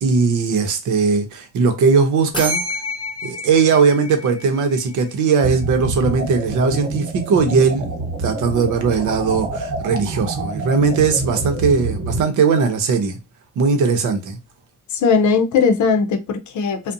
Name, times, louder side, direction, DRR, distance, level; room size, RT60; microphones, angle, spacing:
voice 1, 0.0-2.6 3.2-7.9 8.2-13.2 13.6-14.4, right 5 dB, 80° right, 0.7 m, -18 dB
sound 1, 2.3-5.1, left 1 dB, 15° left, 1.0 m, -29 dB
sound 2, 5.4-12.2, right 2 dB, 55° right, 1.1 m, -27 dB
voice 2, 14.9-16.9, left 5 dB, 70° left, 0.6 m, -18 dB
2.5 x 2.1 x 2.5 m
cardioid pair, 75°, 30 cm